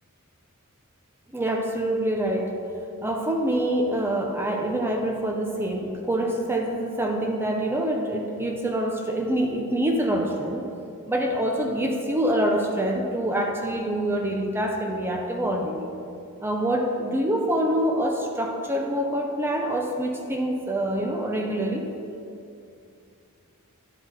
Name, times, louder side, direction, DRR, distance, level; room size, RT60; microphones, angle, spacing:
voice 1, 1.3-2.6 3.0-10.7 11.1-15.9 16.4-21.9, right 1 dB, 10° right, 1 dB, 0.5 m, -26 dB
10.5 x 4.2 x 4.8 m, 2.5 s
head